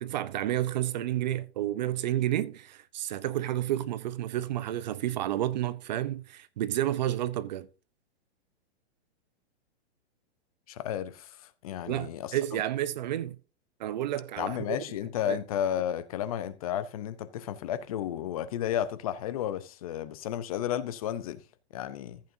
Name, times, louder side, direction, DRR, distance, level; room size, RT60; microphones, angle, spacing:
voice 1, 0.0-7.7 11.9-13.4 13.8-14.8 15.3-15.4, right 13 dB, 40° right, 0.7 m, -30 dB
voice 2, 10.7-12.4 14.4-21.4 21.7-22.2, left 10 dB, 35° left, 0.6 m, -33 dB
14.5 x 8.5 x 2.7 m
supercardioid pair, 170°, 33 cm